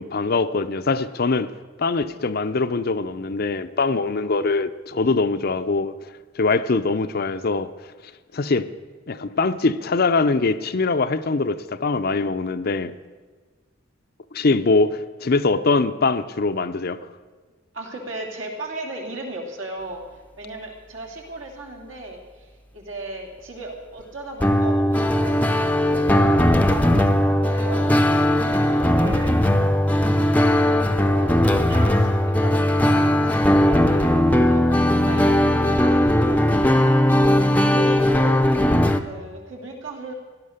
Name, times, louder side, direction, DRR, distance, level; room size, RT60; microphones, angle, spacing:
voice 1, 0.0-1.5 1.8-7.7 8.3-8.7 9.1-12.9 14.3-17.0, left 3 dB, 50° left, 0.6 m, -22 dB
voice 2, 17.7-29.4 30.4-37.0 37.6-38.4 39.0-40.1, right 2 dB, 75° right, 2.9 m, -36 dB
sound 1, 24.4-39.0, left 1 dB, 10° left, 0.7 m, -18 dB
16.5 x 11.5 x 6.6 m
head